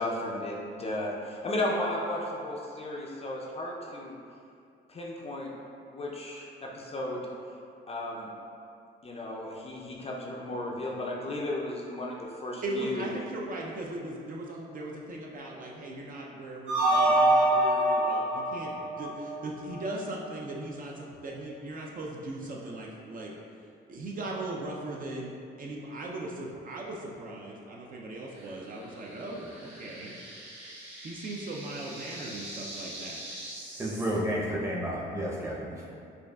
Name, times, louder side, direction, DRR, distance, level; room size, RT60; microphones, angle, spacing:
voice 1, 0.0-4.2 4.9-5.5 5.9-7.6 7.9-8.3 9.0-13.1, left 1 dB, 30° left, -2 dB, 0.4 m, -34 dB
voice 2, 12.6-23.3 23.9-25.3 25.6-30.1 31.0-33.2, right 2 dB, 45° right, -2 dB, 0.5 m, -38 dB
sound 1, 16.7-19.8, right 1 dB, 85° right, 0.6 m, -25 dB
sound 2, 28.3-34.2, right 1 dB, 65° right, 1.4 m, -44 dB
voice 3, 33.8-36.0, equal, 15° right, -5 dB, 0.7 m, -31 dB
4.9 x 2.4 x 2.3 m, 2.5 s
cardioid pair, 90°, 20 cm